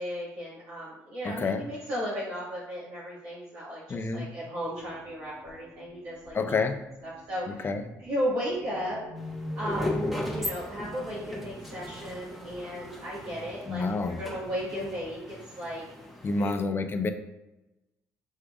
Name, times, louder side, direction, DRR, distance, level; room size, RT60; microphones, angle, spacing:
voice 1, 0.0-6.6 7.0-7.7 8.0-9.0 9.5-15.9 16.3-16.8, equal, 75° right, -8 dB, 1.5 m, -35 dB
voice 2, 1.2-1.6 3.9-4.3 6.3-6.8 7.6-7.8 13.7-14.2 16.2-17.1, left 3 dB, 35° left, 8 dB, 0.5 m, -28 dB
sound 1, 4.8-11.7, equal, 30° right, 1.3 m, -43 dB
sound 2, 9.2-16.5, left 1 dB, ahead, 1.1 m, -37 dB
6.3 x 3.3 x 2.3 m, 0.99 s
supercardioid pair, 65°, 7 cm